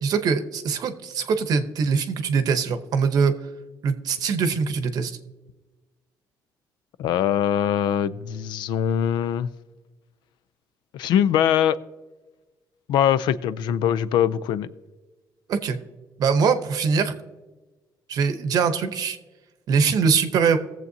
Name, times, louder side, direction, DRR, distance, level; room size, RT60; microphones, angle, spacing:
voice 1, 0.0-3.3 3.8-5.2 15.5-15.8 16.2-17.1 18.1-19.2 19.7-20.6, right 5 dB, 60° right, 8 dB, 0.8 m, -22 dB
voice 2, 7.0-9.5 10.9-11.8 12.9-14.7, left 9 dB, 85° left, 17 dB, 0.5 m, -22 dB
19.0 x 7.4 x 2.7 m, 1.2 s
cardioid pair, 150°, 7 cm